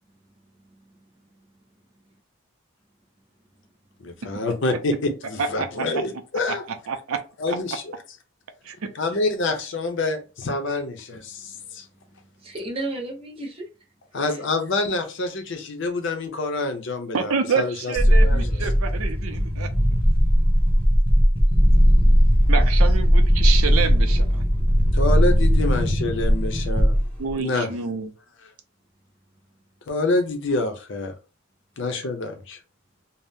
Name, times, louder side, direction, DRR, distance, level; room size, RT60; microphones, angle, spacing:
voice 1, 0.7-1.0 11.5-11.6 12.2-13.7 14.1-14.4, right 2 dB, 25° right, 0.7 m, -34 dB
voice 2, 4.0-6.6 7.4-8.0 9.0-11.8 14.1-17.9 18.2-18.5 24.9-26.9 27.4-27.7 29.9-31.1 31.8-32.6, left 2 dB, 60° left, 0.6 m, -27 dB
voice 3, 5.4-6.0 6.5-6.6 6.9-7.2 8.6-8.9 17.1-19.7 22.5-24.4 27.2-28.1, right 5 dB, 85° right, 0.5 m, -27 dB
sound 1, 18.0-27.3, equal, 10° left, 1.0 m, -18 dB
2.6 x 2.0 x 3.4 m
head